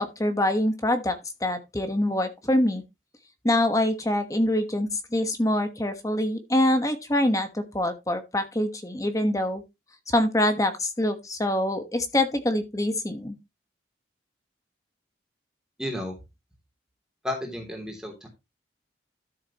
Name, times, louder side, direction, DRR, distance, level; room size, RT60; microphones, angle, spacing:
voice 1, 0.0-2.8 3.4-9.6 10.1-13.4, left 1 dB, 20° left, 8 dB, 1.2 m, -25 dB
voice 2, 15.8-16.1 17.2-18.3, left 1 dB, 5° right, 1 dB, 3.0 m, -32 dB
12.5 x 7.4 x 3.0 m, 0.23 s
head